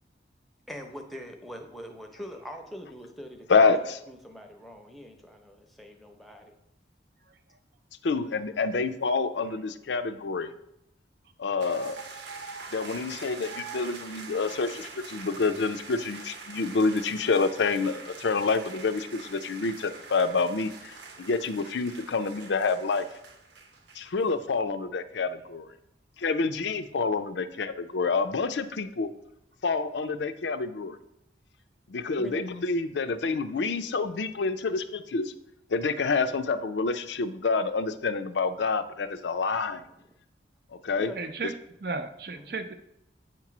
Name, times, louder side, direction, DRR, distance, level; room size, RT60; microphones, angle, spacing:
voice 1, 0.7-3.7 4.1-6.5 32.2-32.5 40.0-40.2 41.0-41.2 42.3-42.5, equal, ahead, 3 dB, 0.7 m, -43 dB
voice 2, 3.5-4.0 8.0-10.5 11.4-12.0 12.7-23.1 24.0-25.7 26.2-29.1 29.6-31.0 31.9-35.3 35.7-39.8 40.7-41.1, left 4 dB, 80° left, 10 dB, 0.5 m, -28 dB
sound 1, 11.6-24.3, right 4 dB, 80° right, 0.9 m, -44 dB
voice 3, 41.2-41.5 41.8-42.7, right 3 dB, 55° right, 8 dB, 0.6 m, -34 dB
8.0 x 3.0 x 5.9 m, 0.81 s
head